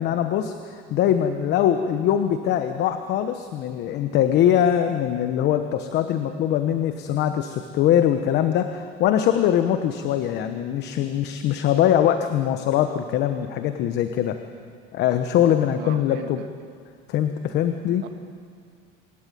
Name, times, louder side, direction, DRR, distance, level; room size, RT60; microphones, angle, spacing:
voice 1, 0.0-14.4 14.9-16.4 17.1-18.1, left 10 dB, 60° left, 8 dB, 1.1 m, -22 dB
voice 2, 15.7-16.5 18.0-18.1, right 10 dB, 60° right, 6 dB, 1.8 m, -38 dB
26.5 x 12.5 x 9.4 m, 2.1 s
cardioid pair, 130°, 20 cm